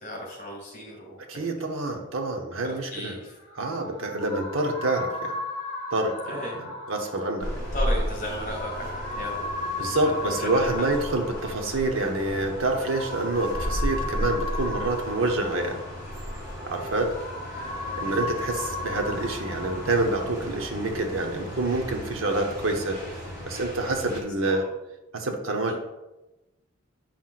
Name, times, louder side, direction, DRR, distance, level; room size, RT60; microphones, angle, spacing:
voice 1, 0.0-1.5 2.6-3.4 6.3-6.6 7.7-10.9 18.0-18.3 24.4-24.6 25.7-25.8, left 1 dB, 35° left, -3 dB, 2.4 m, -36 dB
voice 2, 1.3-3.2 3.6-5.4 5.9-6.1 6.6-7.5 9.8-15.8 16.7-17.1 17.5-17.6 18.0-23.0 23.5-24.6 25.1-25.7, right 2 dB, 65° right, 3 dB, 0.8 m, -27 dB
sound 1, 3.2-20.2, left 2 dB, 55° left, 1.3 m, -36 dB
sound 2, 7.4-24.2, equal, 20° right, 2.4 m, -35 dB
8.9 x 5.7 x 2.4 m, 1.0 s
head